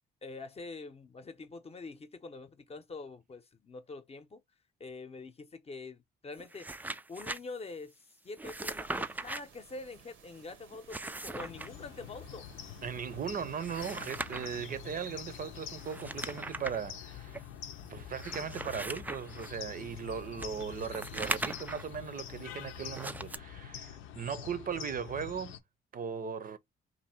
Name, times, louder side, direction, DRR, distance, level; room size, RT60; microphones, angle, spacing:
voice 1, 0.2-4.4 4.8-6.7 7.1-12.5, left 3 dB, 30° left, 0.7 m, -45 dB
sound 1, 6.4-7.4 8.4-9.4 10.7-11.7 13.5-14.6 15.8-16.8 17.3-17.4 18.1-19.5 20.4-21.9 22.9-23.4, right 2 dB, 10° right, 0.3 m, -39 dB
sound 2, 8.4-16.4, right 7 dB, 80° right, 0.8 m, -59 dB
sound 3, 11.3-25.6, left 9 dB, 85° left, 0.6 m, -46 dB
voice 2, 12.8-17.5 17.9-25.6 25.9-26.6, right 7 dB, 45° right, 0.6 m, -38 dB
2.7 x 2.6 x 4.3 m
cardioid pair, 90°, 20 cm